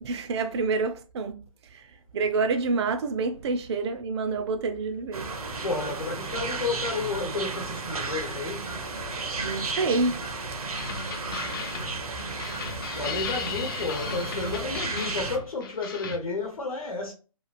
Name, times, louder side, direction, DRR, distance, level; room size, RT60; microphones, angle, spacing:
voice 1, 0.0-5.3 9.4-10.2, right 3 dB, 50° right, 0.4 m, -28 dB
sound 1, 5.1-15.4, right 3 dB, 85° right, 0.7 m, -34 dB
voice 2, 5.6-8.7 13.0-17.1, left 3 dB, 80° left, 0.9 m, -31 dB
sound 2, 10.8-16.2, left 5 dB, 40° left, 0.5 m, -36 dB
2.9 x 2.4 x 2.4 m
hypercardioid pair, 150°, 18 cm